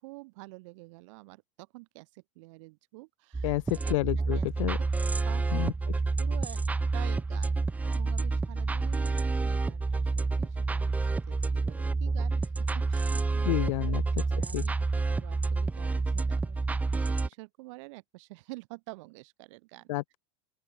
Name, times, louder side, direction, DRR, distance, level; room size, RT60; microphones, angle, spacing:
voice 1, 0.0-3.9 4.3-4.7 5.2-6.6 6.9-7.5 7.8-12.5 12.7-20.0, right 24 dB, 65° right, 7.0 m, -48 dB
sound 1, 3.3-17.3, right 3 dB, 10° right, 0.6 m, -29 dB
voice 2, 3.4-4.8 5.5-5.7 13.5-14.0 14.5-14.6 19.9-20.2, left 19 dB, 75° left, 0.6 m, -29 dB
open air
supercardioid pair, 130°, 17 cm